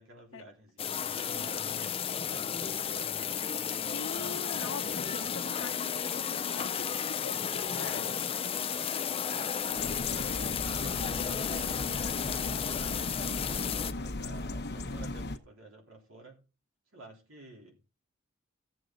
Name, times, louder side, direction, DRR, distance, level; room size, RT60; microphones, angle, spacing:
voice 1, 0.0-3.2 9.7-10.6 10.9-11.9 12.5-16.4 16.9-17.8, right 1 dB, 85° right, 3.6 m, -51 dB
sound 1, 0.8-13.9, left 8 dB, 30° left, 0.5 m, -33 dB
voice 2, 3.9-6.7 7.1-8.0, left 4 dB, 80° left, 1.1 m, -43 dB
sound 2, 9.8-15.4, left 2 dB, 55° left, 1.0 m, -37 dB
13.5 x 7.7 x 3.9 m
head